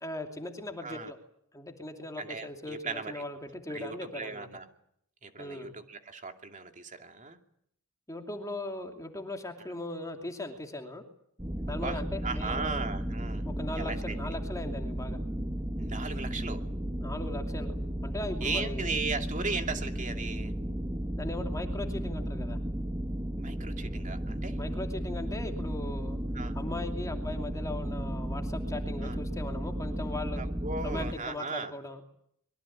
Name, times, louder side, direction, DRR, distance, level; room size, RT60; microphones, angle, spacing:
voice 1, 0.0-1.2 1.5-4.5 5.4-5.7 8.1-11.0 11.7-12.9 13.4-15.2 17.0-17.8 18.0-18.9 21.2-22.6 24.6-26.2 26.5-30.4 30.8-32.0, left 2 dB, 15° left, 4 dB, 2.8 m, -39 dB
voice 2, 2.2-3.2 3.7-4.7 5.2-7.4 11.8-13.4 13.7-14.3 15.8-16.7 18.4-20.5 23.4-24.6 26.3-26.5 29.0-29.2 30.4-31.7, right 4 dB, 35° right, 5 dB, 2.7 m, -37 dB
sound 1, 11.4-31.1, equal, 15° right, 1.6 m, -34 dB
25.0 x 22.5 x 8.7 m, 0.70 s
head